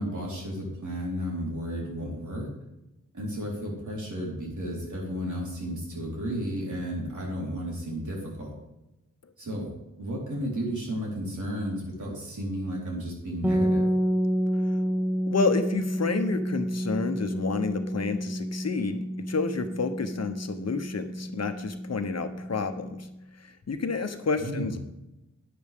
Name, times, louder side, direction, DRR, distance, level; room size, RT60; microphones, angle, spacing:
voice 1, 0.0-2.5 3.1-8.5 9.4-9.7 10.0-13.9 24.4-24.8, equal, 70° right, -4 dB, 4.2 m, -33 dB
sound 1, 13.4-23.2, equal, 5° right, 0.7 m, -29 dB
voice 2, 15.3-23.1 23.4-24.8, left 4 dB, 55° left, 8 dB, 0.9 m, -30 dB
11.5 x 9.6 x 3.6 m, 0.94 s
wide cardioid pair, 105°, 31 cm